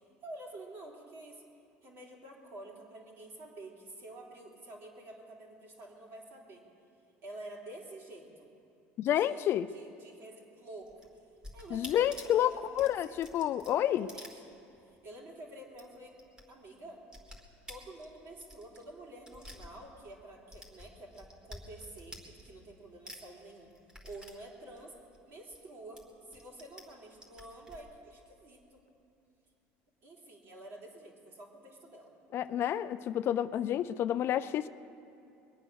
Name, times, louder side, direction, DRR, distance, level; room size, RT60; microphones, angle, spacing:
voice 1, 0.2-1.4 1.8-6.6 7.2-8.5 9.0-11.1 11.5-13.2 13.7-14.5 14.8-16.2 16.5-17.0 17.7-23.7 24.0-24.9 25.2-26.0 26.3-28.8 30.0-32.1, right 1 dB, 50° right, -1 dB, 3.4 m, -49 dB
voice 2, 9.0-9.7 11.7-14.1 32.3-34.7, left 11 dB, 50° left, 14 dB, 0.4 m, -29 dB
sound 1, 10.8-15.0 15.3-15.4 15.7-16.4 16.7-20.2 20.5-22.8 23.1-25.6 26.0-26.8 27.1-27.8, equal, 15° right, 2.2 m, -50 dB
22.0 x 8.8 x 6.3 m, 2.7 s
supercardioid pair, 115°, 5 cm